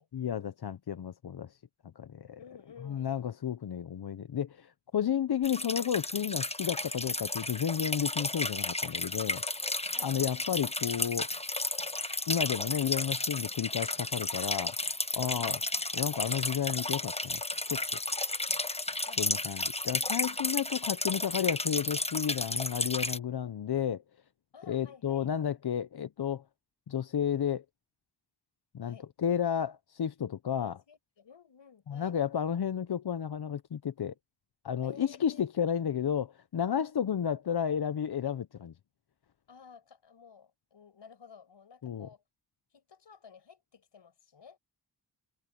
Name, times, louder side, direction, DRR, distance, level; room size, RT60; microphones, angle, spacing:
voice 1, 0.1-1.6 2.0-2.4 2.8-9.4 10.0-11.3 12.3-14.8 15.1-15.6 15.9-17.4 17.7-17.8 19.2-24.0 24.7-26.4 26.9-27.6 28.7-30.8 31.9-34.1 34.6-38.7 41.8-42.1, left 8 dB, 65° left, 0.8 m, -32 dB
voice 2, 2.4-3.1 9.9-10.2 15.2-15.7 19.1-19.4 20.1-20.4 24.5-25.3 28.8-29.1 30.5-32.2 34.8-35.5 39.5-42.2 42.7-44.6, left 6 dB, 90° left, 7.1 m, -54 dB
sound 1, 5.4-23.2, left 2 dB, 15° left, 1.2 m, -33 dB
wide cardioid pair, 85°, 42 cm